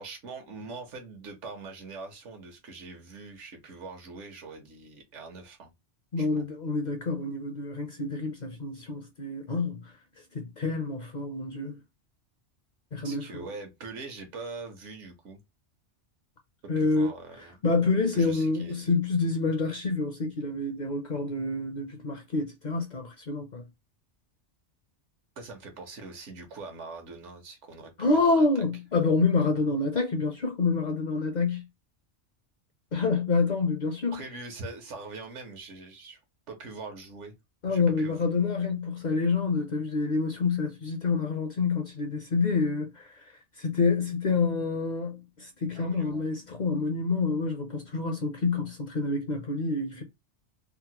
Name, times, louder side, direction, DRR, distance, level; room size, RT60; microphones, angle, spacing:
voice 1, 0.0-5.7 6.1-6.4 13.0-15.4 16.8-17.6 18.1-18.9 25.4-28.6 34.1-36.2 36.5-37.4 37.6-38.3 45.7-46.5, right 3 dB, 80° right, 1.3 m, -43 dB
voice 2, 6.1-9.9 10.3-11.8 12.9-13.5 16.7-17.1 17.6-23.6 28.0-31.6 32.9-34.2 37.6-43.2 43.6-50.0, left 4 dB, 50° left, 0.6 m, -27 dB
3.6 x 2.1 x 2.8 m
omnidirectional pair, 1.2 m